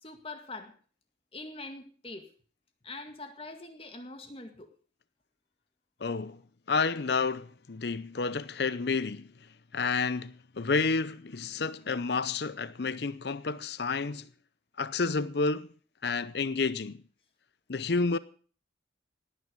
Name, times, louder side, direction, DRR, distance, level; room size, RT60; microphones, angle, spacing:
voice 1, 0.0-0.7 1.3-2.3 2.8-4.7, left 2 dB, 30° left, 2.0 m, -43 dB
voice 2, 6.0-6.4 6.7-9.3 9.7-14.3 14.8-15.7 16.0-17.0 17.7-18.2, left 4 dB, 60° left, 0.6 m, -30 dB
18.0 x 9.8 x 5.3 m
head